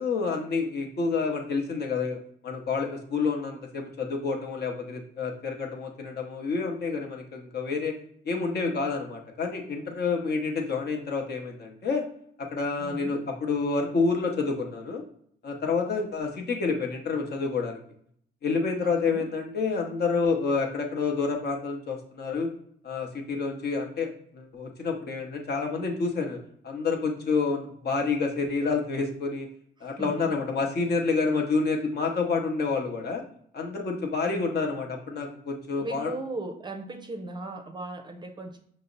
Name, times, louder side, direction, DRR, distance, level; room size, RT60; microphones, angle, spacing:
voice 1, 0.0-2.2 2.4-7.9 8.2-12.0 12.4-15.0 15.4-17.8 18.4-22.5 22.8-26.4 26.6-29.5 29.8-33.2 33.5-36.1, left 4 dB, 55° left, 2 dB, 0.8 m, -28 dB
voice 2, 8.3-8.9 12.8-13.2 18.8-19.3 29.8-30.3 30.8-30.9 34.3-34.7 35.8-38.6, right 2 dB, 20° right, 4 dB, 0.5 m, -38 dB
5.5 x 2.0 x 3.8 m, 0.66 s
cardioid pair, 90°, 20 cm